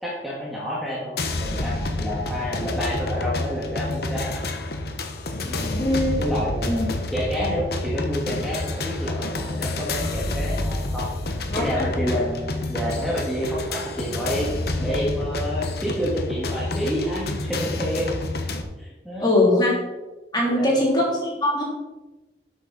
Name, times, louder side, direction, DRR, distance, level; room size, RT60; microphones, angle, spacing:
voice 1, 0.0-4.3 5.4-5.9 6.2-11.1 11.6-18.1 18.8-19.4 20.5-20.9, equal, ahead, -7 dB, 2.0 m, -29 dB
sound 1, 1.2-18.6, left 2 dB, 55° left, 1.1 m, -28 dB
voice 2, 5.8-6.2 6.6-6.9 11.5-11.9 19.2-19.8 20.3-21.6, left 1 dB, 20° left, -3 dB, 3.3 m, -21 dB
12.0 x 8.4 x 4.2 m, 1.1 s
head